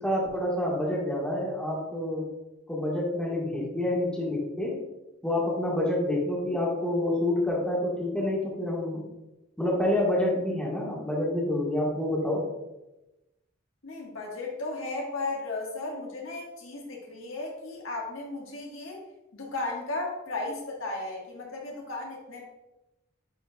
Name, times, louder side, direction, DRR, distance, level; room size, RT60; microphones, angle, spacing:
voice 1, 0.0-2.2 2.7-4.8 5.2-9.1 9.6-12.4, left 1 dB, 5° left, -5 dB, 1.6 m, -28 dB
voice 2, 13.8-19.0 19.3-22.4, left 2 dB, 85° left, -1 dB, 1.5 m, -35 dB
9.7 x 4.3 x 2.3 m, 0.97 s
head